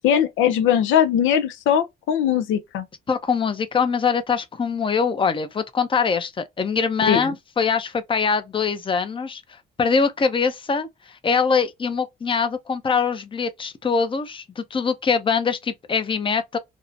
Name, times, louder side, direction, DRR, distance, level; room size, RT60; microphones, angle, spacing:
voice 1, 0.0-2.9 7.0-7.3, left 9 dB, 90° left, 0.5 m, -20 dB
voice 2, 3.1-9.4 9.8-10.9 11.2-16.6, left 5 dB, 25° left, 0.5 m, -23 dB
2.6 x 2.1 x 2.5 m
cardioid pair, 90°, 20 cm